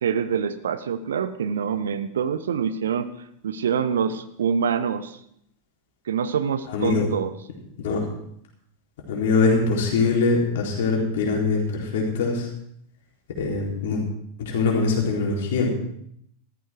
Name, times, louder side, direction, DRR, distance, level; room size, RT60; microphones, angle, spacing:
voice 1, 0.0-3.1 3.4-5.2 6.1-7.3, right 7 dB, 65° right, 13 dB, 0.8 m, -25 dB
voice 2, 6.7-7.1 7.8-8.0 9.1-12.5 13.4-14.0 14.4-15.7, left 4 dB, 55° left, -1 dB, 4.0 m, -22 dB
14.0 x 14.0 x 4.7 m, 0.71 s
figure-of-eight pair, 90°, 0 cm